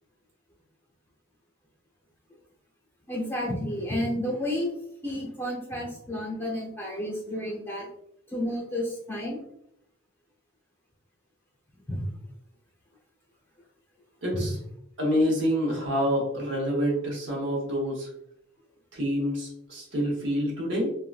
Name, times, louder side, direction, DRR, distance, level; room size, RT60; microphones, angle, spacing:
voice 1, 3.1-4.7 5.0-7.9 8.3-9.4 11.9-12.0 14.3-14.5, left 1 dB, 10° left, -3 dB, 0.7 m, -31 dB
voice 2, 14.2-14.5 15.0-18.1 18.9-20.9, equal, 65° right, -2 dB, 1.0 m, -27 dB
3.6 x 2.3 x 2.4 m, 0.75 s
head